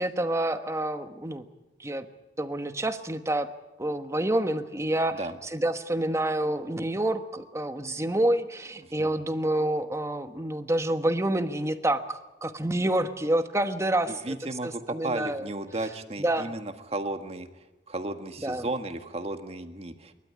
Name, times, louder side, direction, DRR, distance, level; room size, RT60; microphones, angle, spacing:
voice 1, 0.0-1.4 1.8-2.1 2.4-3.5 3.8-14.3 14.6-15.5 16.2-16.5 18.4-18.7, right 1 dB, 15° right, 9 dB, 1.2 m, -28 dB
voice 2, 14.1-17.5 17.9-20.1, right 2 dB, 35° right, 7 dB, 1.7 m, -34 dB
28.5 x 13.0 x 9.9 m, 1.1 s
head